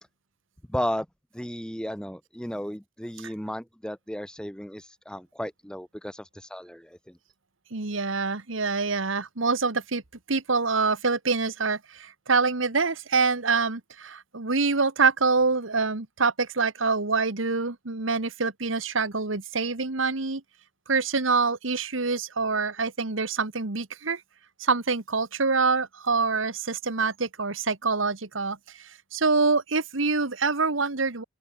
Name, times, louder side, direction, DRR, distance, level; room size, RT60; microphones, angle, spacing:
voice 1, 0.7-1.1 1.3-7.2, equal, 5° left, 2.2 m, -34 dB
voice 2, 7.7-10.0 10.3-20.4 20.9-24.2 24.6-28.6 29.1-31.2, right 4 dB, 85° right, 1.7 m, -25 dB
open air
head